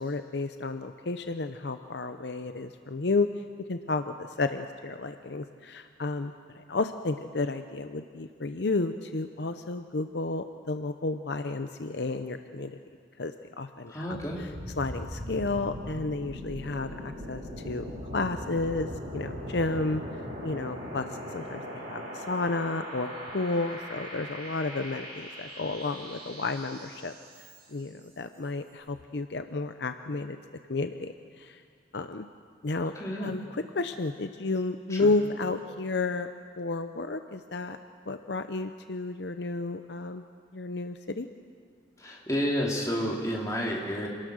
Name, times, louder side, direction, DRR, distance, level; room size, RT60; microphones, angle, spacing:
voice 1, 0.0-3.3 3.7-12.8 13.2-14.2 14.8-17.8 18.1-20.0 20.4-27.1 27.7-30.4 30.7-31.6 31.9-32.3 32.6-32.9 33.2-36.3 36.6-37.8 38.1-40.2 40.5-41.3, left 3 dB, 65° left, 8 dB, 0.7 m, -32 dB
voice 2, 13.9-14.4 32.9-33.3 34.9-35.1 42.0-44.1, equal, 15° left, -3 dB, 3.2 m, -30 dB
sound 1, 14.1-27.9, equal, 55° right, 5.7 m, -40 dB
27.0 x 19.0 x 6.4 m, 2.1 s
head